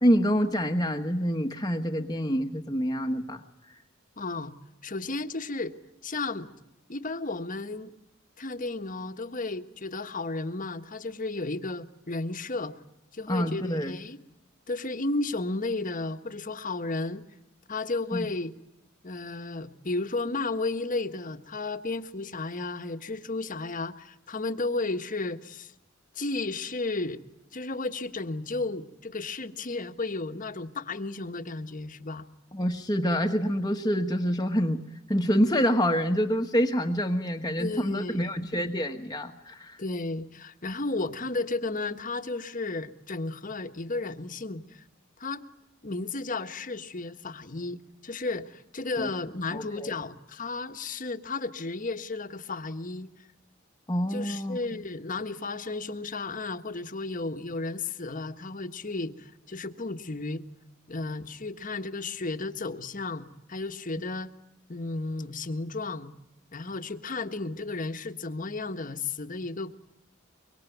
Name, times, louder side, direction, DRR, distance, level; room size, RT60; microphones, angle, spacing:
voice 1, 0.0-3.4 13.3-14.0 18.1-18.3 32.5-34.8 35.1-39.8 49.0-49.1 49.5-49.9 53.9-54.6, equal, 20° left, 3 dB, 1.4 m, -26 dB
voice 2, 4.2-4.5 4.8-5.7 6.0-6.5 6.9-7.9 8.4-12.7 13.1-14.2 14.7-17.2 17.7-18.5 19.0-25.7 26.1-27.2 27.5-32.3 37.6-38.4 39.8-44.8 45.2-45.5 45.8-53.1 54.1-60.4 60.9-64.3 64.7-66.1 66.5-69.8, left 3 dB, 40° left, 8 dB, 1.4 m, -33 dB
25.0 x 24.0 x 9.2 m, 0.88 s
head